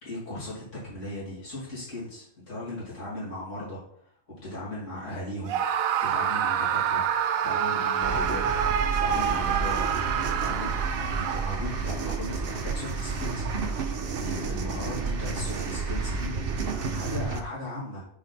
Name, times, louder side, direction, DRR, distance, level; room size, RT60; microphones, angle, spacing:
voice 1, 0.0-3.8 4.4-8.4 9.0-9.9 10.4-10.7 11.0-13.7 14.2-16.3 16.9-18.0, left 1 dB, 60° left, -9 dB, 2.9 m, -37 dB
Screaming, 5.5-11.7, right 8 dB, 85° right, 1.0 m, -27 dB
sound 1, 8.0-17.4, right 4 dB, 55° right, 0.8 m, -31 dB
sound 2, 9.1-13.3, left 1 dB, 20° left, 1.1 m, -46 dB
6.2 x 5.0 x 4.0 m, 0.66 s
omnidirectional pair, 1.4 m